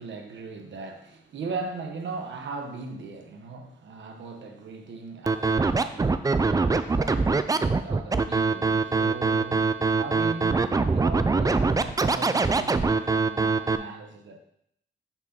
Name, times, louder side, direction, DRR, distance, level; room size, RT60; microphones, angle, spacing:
voice 1, 0.0-14.4, right 4 dB, 90° right, 3 dB, 1.0 m, -38 dB
Scratching (performance technique), 5.3-13.8, right 4 dB, 20° right, 0.3 m, -23 dB
6.0 x 3.9 x 5.8 m, 0.74 s
wide cardioid pair, 95°, 19 cm